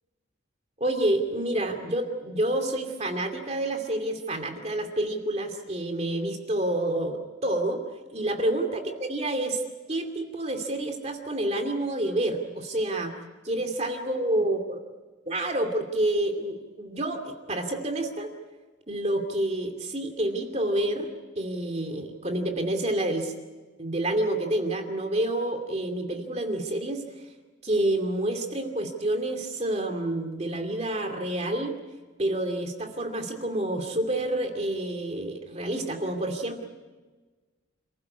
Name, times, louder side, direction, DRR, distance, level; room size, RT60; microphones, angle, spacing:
voice 1, 0.8-7.8 8.1-9.6 9.9-13.1 13.4-14.8 15.3-18.3 18.9-23.3 23.8-27.0 27.6-31.8 32.2-36.7, right 1 dB, 35° right, 5 dB, 2.5 m, -28 dB
28.0 x 15.0 x 9.6 m, 1.3 s
head